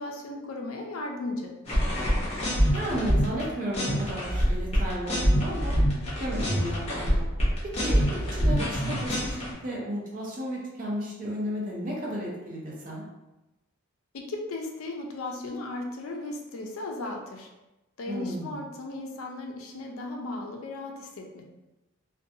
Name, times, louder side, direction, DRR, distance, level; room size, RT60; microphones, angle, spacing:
voice 1, 0.0-1.5 14.1-17.5 18.0-21.4, left 2 dB, 70° left, 1 dB, 0.4 m, -36 dB
sound 1, 1.7-3.4 3.7-9.5, equal, 30° left, 0.7 m, -25 dB
voice 2, 2.7-5.8 6.1-7.3 7.6-13.0 18.1-18.6, equal, 40° right, -4 dB, 0.6 m, -34 dB
2.5 x 2.2 x 2.6 m, 1.0 s
head